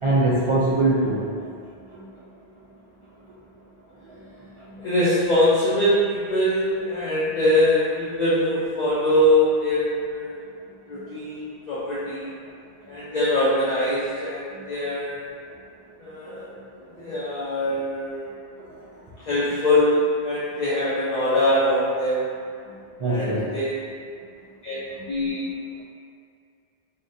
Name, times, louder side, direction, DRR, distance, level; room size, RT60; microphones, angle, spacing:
voice 1, 0.0-1.3 1.9-2.1 4.7-4.8 23.0-23.4, right 2 dB, 60° right, -9 dB, 0.3 m, -22 dB
voice 2, 4.8-10.3 10.9-12.3 12.9-15.2 16.0-16.6 17.0-18.4 19.2-22.2 23.0-23.7 24.6-24.8 25.1-25.4, left 1 dB, 50° left, -9 dB, 0.6 m, -23 dB
3.6 x 2.1 x 2.6 m, 2.2 s
omnidirectional pair, 1.0 m